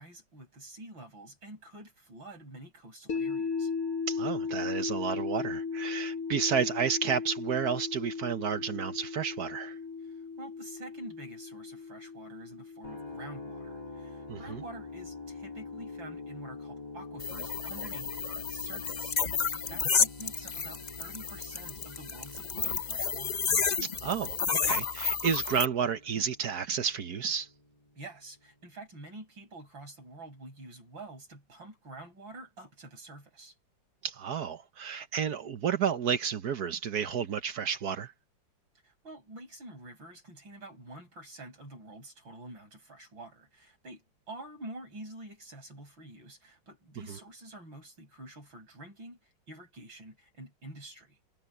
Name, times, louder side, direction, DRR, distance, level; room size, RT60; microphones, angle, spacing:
voice 1, 0.0-3.7 10.0-23.5 28.0-33.6 38.8-51.2, right 1 dB, 85° right, 8.7 m, -48 dB
sound 1, 3.1-15.2, left 5 dB, 50° left, 1.8 m, -37 dB
voice 2, 4.1-9.8 14.3-14.6 23.8-27.5 34.0-38.1 47.1-47.2, right 7 dB, 60° right, 1.4 m, -31 dB
sound 2, 12.8-28.8, left 3 dB, 20° left, 2.6 m, -46 dB
sound 3, 17.2-25.7, left 6 dB, 85° left, 0.3 m, -31 dB
omnidirectional pair, 2.1 m